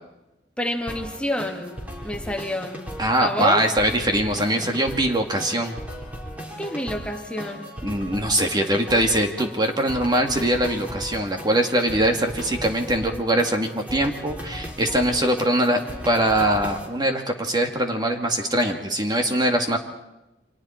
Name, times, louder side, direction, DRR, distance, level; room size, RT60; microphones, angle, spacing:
voice 1, 0.6-2.9 3.2-3.6 6.6-7.8, left 1 dB, 5° left, 2.2 m, -29 dB
sound 1, 0.9-16.9, equal, 10° right, 4.3 m, -37 dB
voice 2, 3.0-5.8 7.8-15.8 16.1-19.8, right 1 dB, 25° right, 2.0 m, -22 dB
29.5 x 25.5 x 4.4 m
head